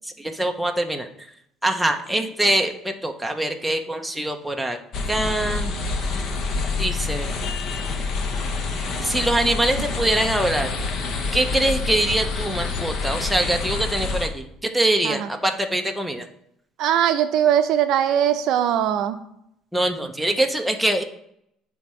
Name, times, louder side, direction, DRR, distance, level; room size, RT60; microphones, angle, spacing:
voice 1, 0.0-1.3 1.6-4.8 5.1-5.7 6.8-7.3 9.0-10.7 11.3-16.3 19.7-21.0, right 1 dB, ahead, 3 dB, 0.5 m, -23 dB
sound 1, 4.9-14.3, left 4 dB, 45° left, 0.7 m, -27 dB
voice 2, 16.8-19.2, right 10 dB, 60° right, 9 dB, 0.5 m, -20 dB
9.1 x 3.5 x 4.2 m, 0.74 s
cardioid pair, 160°, 0 cm